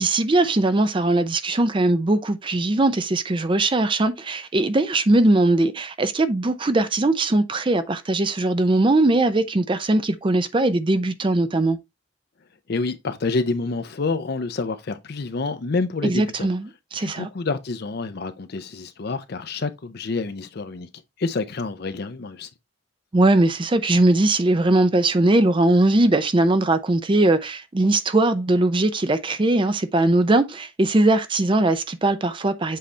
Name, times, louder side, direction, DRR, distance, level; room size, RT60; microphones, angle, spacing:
voice 1, 0.0-11.8 16.0-17.3 23.1-32.8, right 2 dB, 25° right, 0.5 m, -20 dB
voice 2, 12.7-16.5 17.0-20.9 21.2-22.5, left 3 dB, 55° left, 0.5 m, -28 dB
7.6 x 4.1 x 3.2 m
head